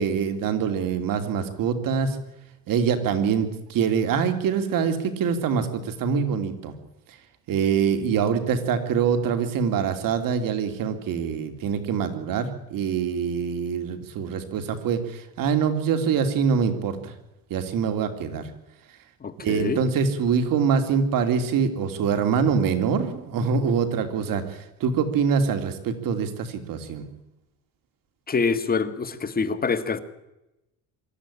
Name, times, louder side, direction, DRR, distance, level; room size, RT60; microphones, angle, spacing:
voice 1, 0.0-2.2 2.7-6.7 7.1-7.2 7.5-17.1 17.5-18.5 19.4-27.0, right 6 dB, 60° right, 7 dB, 2.9 m, -24 dB
voice 2, 19.2-19.8 28.3-30.0, left 5 dB, 25° left, 10 dB, 1.7 m, -25 dB
23.5 x 13.5 x 10.0 m, 0.96 s
cardioid pair, 125°, 37 cm